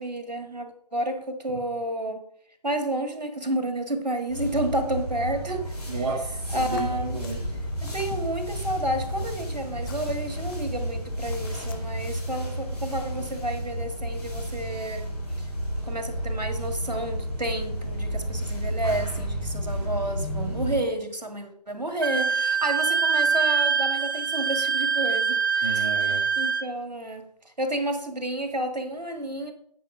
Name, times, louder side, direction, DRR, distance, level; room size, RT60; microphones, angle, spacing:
voice 1, 0.0-2.2 2.6-5.7 6.5-7.2 7.8-15.1 15.4-15.5 15.8-25.8 26.0-27.2 27.6-29.5, right 1 dB, 90° right, 6 dB, 1.7 m, -30 dB
sound 1, 4.3-20.8, right 1 dB, 65° left, 4.2 m, -32 dB
voice 2, 5.9-7.7 25.6-26.2, right 3 dB, 50° right, -3 dB, 1.7 m, -33 dB
sound 2, 6.4-12.2, left 8 dB, 35° left, 0.7 m, -42 dB
Wind instrument woodwind instrument, 22.0-26.7, right 5 dB, 30° right, 0.4 m, -24 dB
9.2 x 4.3 x 6.0 m, 0.68 s
figure-of-eight pair, 145°, 21 cm